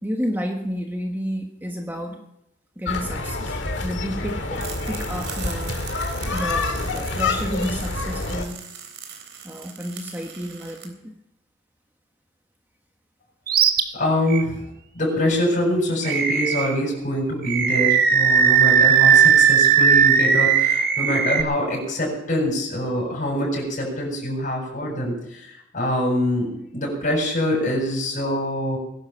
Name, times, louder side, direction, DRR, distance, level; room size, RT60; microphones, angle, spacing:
voice 1, 0.0-2.2 2.8-5.8 6.3-8.6 9.4-11.1, equal, 10° right, 2 dB, 1.4 m, -31 dB
sound 1, 2.9-8.4, left 3 dB, 70° left, 1.9 m, -27 dB
sound 2, 4.6-10.9, right 7 dB, 70° right, 3.7 m, -40 dB
Animal, 13.5-13.8 14.3-14.4 16.0-16.8 17.4-21.4, right 7 dB, 50° right, 1.4 m, -17 dB
voice 2, 13.9-14.6 14.9-28.8, left 1 dB, 45° left, -4 dB, 7.2 m, -24 dB
20.5 x 11.5 x 5.8 m, 0.81 s
head